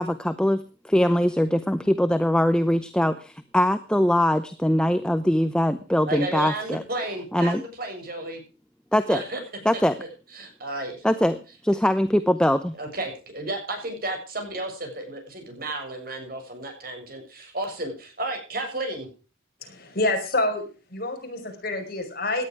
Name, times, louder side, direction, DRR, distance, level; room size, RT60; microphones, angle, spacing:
voice 1, 0.0-6.8 7.3-7.6 8.9-9.2 9.6-10.0 11.0-12.7, equal, 5° left, 10 dB, 0.7 m, -22 dB
voice 2, 6.1-8.4 9.1-9.4 10.3-11.0 12.7-19.1, right 2 dB, 45° right, 4 dB, 7.1 m, -32 dB
voice 3, 19.6-20.6 20.9-22.5, left 2 dB, 45° left, 4 dB, 5.1 m, -27 dB
18.0 x 11.5 x 4.8 m, 0.36 s
head